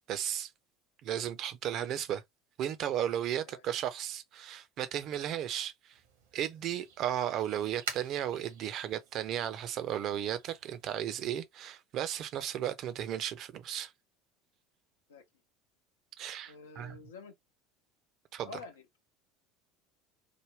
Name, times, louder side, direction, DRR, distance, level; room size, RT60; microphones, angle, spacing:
voice 1, 0.1-0.5 1.0-2.2 2.6-6.0 6.3-13.9 16.2-17.0 18.3-18.5, right 10 dB, 45° right, 0.6 m, -35 dB
sound 1, 5.9-11.1, right 7 dB, 70° right, 0.9 m, -48 dB
voice 2, 16.5-17.3 18.4-19.0, left 4 dB, 70° left, 0.8 m, -48 dB
3.4 x 2.2 x 3.2 m
figure-of-eight pair, 70°, 0 cm